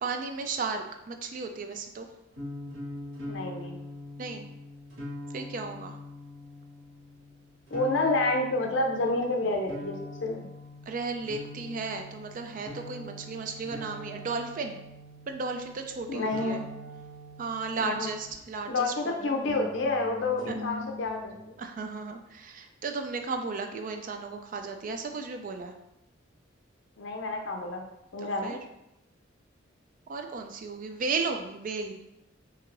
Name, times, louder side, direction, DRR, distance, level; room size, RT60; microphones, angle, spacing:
voice 1, 0.0-2.1 4.2-4.5 5.3-6.0 10.9-14.8 15.3-16.6 17.4-19.4 20.5-20.6 21.6-25.7 28.2-28.6 30.1-32.0, right 4 dB, 45° right, 6 dB, 0.3 m, -34 dB
sound 1, 2.3-18.6 19.4-21.4, left 1 dB, 75° right, 1.2 m, -43 dB
voice 2, 3.2-3.8 7.7-10.5 16.1-16.6 17.8-18.1 18.7-21.6 27.0-27.8 28.1-28.5, left 2 dB, 65° left, 2 dB, 0.6 m, -29 dB
4.4 x 2.8 x 2.5 m, 0.85 s
head